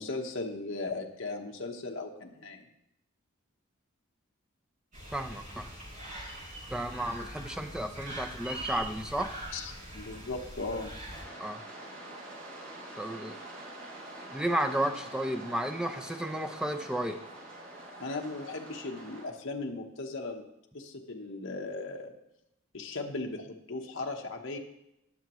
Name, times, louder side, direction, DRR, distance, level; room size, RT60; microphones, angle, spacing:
voice 1, 0.0-2.6 9.5-10.9 18.0-20.5 20.7-22.1 22.7-24.6, left 3 dB, 60° left, 1 dB, 1.1 m, -37 dB
sound 1, 4.9-11.2, right 1 dB, 35° right, 5.1 m, -42 dB
voice 2, 5.1-5.7 6.7-9.4 11.4-11.6 13.0-13.4 14.3-17.2, right 1 dB, 5° right, 5 dB, 0.6 m, -33 dB
sound 2, 11.1-19.2, right 1 dB, 60° right, 4.7 m, -46 dB
19.0 x 7.0 x 3.1 m, 0.83 s
head